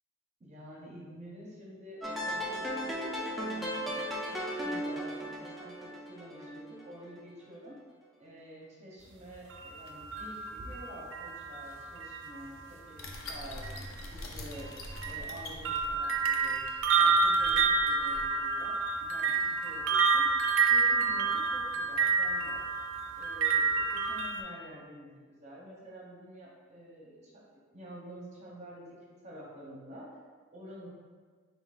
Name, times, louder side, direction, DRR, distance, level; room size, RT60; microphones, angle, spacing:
voice 1, 0.4-7.8 8.2-13.7 14.1-14.7 15.0-16.6 16.9-20.3 20.7-22.6 23.2-30.1 30.5-30.9, equal, 35° right, -4 dB, 0.8 m, -48 dB
sound 1, 2.0-7.1, equal, ahead, 0.4 m, -36 dB
sound 2, 9.5-12.7 13.6-13.8 14.6-24.4, right 5 dB, 65° right, 0.4 m, -29 dB
sound 3, 13.0-18.2, left 1 dB, 80° left, 0.5 m, -44 dB
3.9 x 3.7 x 2.4 m, 1.5 s
head